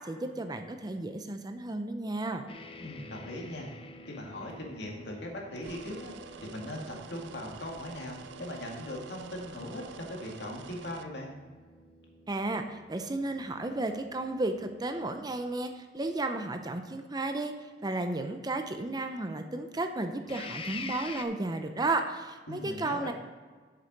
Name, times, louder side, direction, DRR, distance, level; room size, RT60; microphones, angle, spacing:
voice 1, 0.0-2.5 12.3-17.5 17.8-23.1, right 2 dB, 20° right, 6 dB, 0.6 m, -33 dB
sound 1, 2.5-15.6 20.3-21.2, left 3 dB, 30° left, 0.6 m, -48 dB
voice 2, 2.8-3.7 4.0-6.1 6.4-11.3 22.5-23.1, left 1 dB, 70° left, 0 dB, 2.1 m, -39 dB
sound 2, 5.6-11.0, right 6 dB, 75° right, 0.5 m, -48 dB
7.9 x 6.8 x 5.2 m, 1.5 s
head